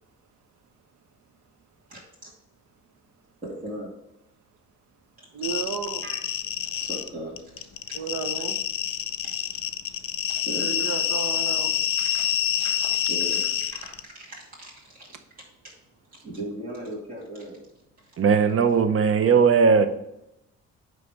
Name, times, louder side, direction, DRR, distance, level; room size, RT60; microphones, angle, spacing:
voice 1, 1.9-2.3 3.4-3.9 5.2-5.3 6.0-6.2 6.6-8.0 9.2-9.7 10.3-11.1 12.0-15.1 15.6-15.7 16.1-17.7 18.0-18.1, right 1 dB, 30° right, -5 dB, 2.3 m, -39 dB
voice 2, 5.3-6.0 7.9-8.6 10.6-11.7, right 6 dB, 85° right, 8 dB, 0.9 m, -32 dB
sound 1, 5.4-7.1 7.4-14.0, left 9 dB, 45° left, 0.6 m, -27 dB
voice 3, 18.2-19.9, right 6 dB, 45° right, 10 dB, 0.8 m, -18 dB
9.4 x 3.3 x 4.8 m, 0.88 s
cardioid pair, 90°, 30 cm